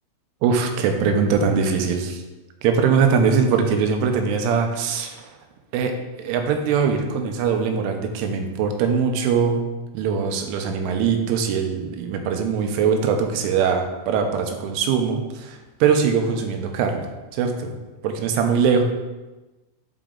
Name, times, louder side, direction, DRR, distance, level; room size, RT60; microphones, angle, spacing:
voice 1, 0.4-2.2 2.6-5.3 5.7-5.9 6.2-9.6 9.9-17.0 17.3-17.7 18.0-18.8, right 6 dB, 90° right, 4 dB, 3.3 m, -21 dB
9.0 x 4.6 x 3.8 m, 1.1 s
omnidirectional pair, 5.4 m